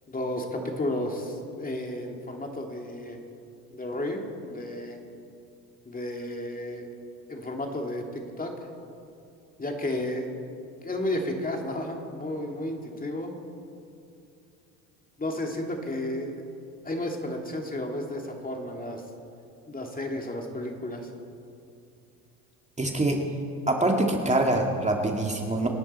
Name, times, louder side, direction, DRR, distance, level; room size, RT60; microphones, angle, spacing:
voice 1, 0.1-3.2 3.7-5.0 5.9-6.9 7.3-8.0 8.4-8.5 9.6-10.3 10.8-13.3 15.2-16.4 16.8-19.0 19.7-21.1, left 1 dB, 20° left, 2 dB, 2.5 m, -32 dB
voice 2, 22.8-23.2 23.7-25.7, right 2 dB, 15° right, 1 dB, 2.2 m, -24 dB
27.0 x 11.0 x 4.3 m, 2.5 s
hypercardioid pair, 70°, 43 cm